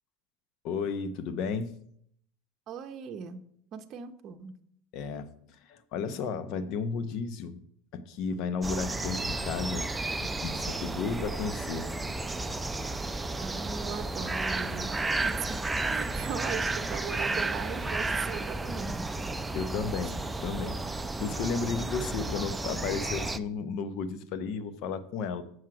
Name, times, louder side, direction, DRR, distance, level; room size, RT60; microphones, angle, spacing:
voice 1, 0.6-1.8 4.9-7.6 7.9-9.9 10.2-11.9 19.5-25.4, left 5 dB, 55° left, 12 dB, 0.7 m, -33 dB
voice 2, 2.7-3.5 3.7-4.6 13.4-19.1 20.0-20.1, right 6 dB, 45° right, 6 dB, 0.7 m, -39 dB
sound 1, 8.6-23.4, right 2 dB, 10° right, 0.4 m, -32 dB
7.4 x 6.3 x 4.7 m, 0.67 s
hypercardioid pair, 100°, 0 cm